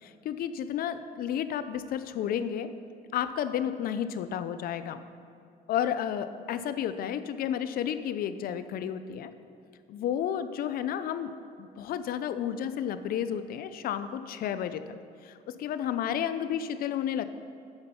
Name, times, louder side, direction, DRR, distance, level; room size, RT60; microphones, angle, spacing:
voice 1, 0.0-2.7 3.1-5.0 5.7-9.3 9.9-11.3 11.6-14.8 15.2-17.3, left 9 dB, 60° left, 12 dB, 0.5 m, -32 dB
8.7 x 6.0 x 5.6 m, 2.5 s
cardioid pair, 110°, 17 cm